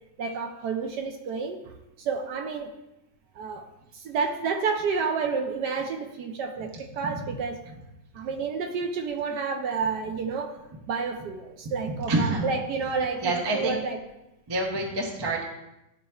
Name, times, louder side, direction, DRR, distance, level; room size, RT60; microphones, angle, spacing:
voice 1, 0.2-2.7 3.4-3.7 3.9-7.6 8.1-10.6 10.9-14.0, right 5 dB, 70° right, 4 dB, 1.1 m, -30 dB
voice 2, 12.1-12.5 13.2-13.8 14.5-15.4, right 2 dB, 30° right, 0 dB, 0.4 m, -27 dB
12.0 x 4.2 x 2.3 m, 0.93 s
omnidirectional pair, 2.1 m